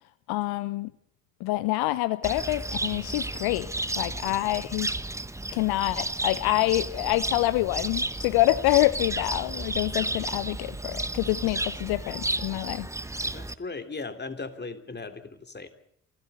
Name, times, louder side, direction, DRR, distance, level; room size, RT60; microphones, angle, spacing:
voice 1, 0.3-0.9 1.4-3.7 4.0-4.9 5.5-12.9, left 18 dB, 65° left, 17 dB, 0.9 m, -26 dB
Cricket, 2.2-13.5, right 2 dB, 5° right, 1.1 m, -33 dB
voice 2, 13.3-15.7, left 3 dB, 25° left, 9 dB, 3.0 m, -37 dB
28.0 x 15.5 x 8.3 m, 0.71 s
hypercardioid pair, 50°, 41 cm